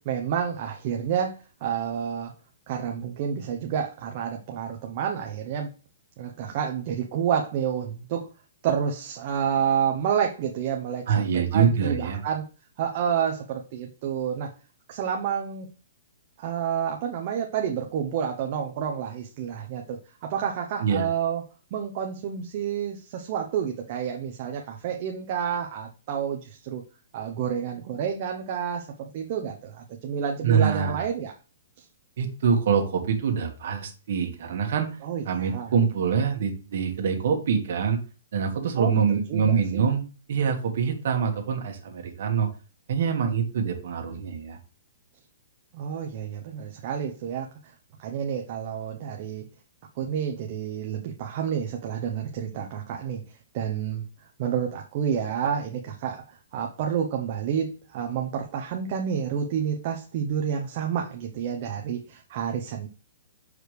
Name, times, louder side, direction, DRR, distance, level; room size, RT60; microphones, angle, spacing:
voice 1, 0.0-2.3 2.7-5.7 6.2-8.3 8.6-12.5 12.8-14.5 14.9-15.7 16.4-21.4 21.7-26.8 27.1-31.3 31.8-31.9 35.0-35.7 38.8-39.8 45.7-47.7 48.0-49.4 50.0-54.0 54.4-62.9, right 8 dB, 30° right, 2 dB, 0.6 m, -29 dB
voice 2, 11.1-12.2 20.8-21.0 30.4-31.0 32.2-35.0 35.3-38.0 38.3-42.5 42.9-44.6, right 6 dB, 50° right, 3 dB, 1.4 m, -25 dB
6.6 x 4.9 x 3.2 m, 0.34 s
hypercardioid pair, 175°, 0 cm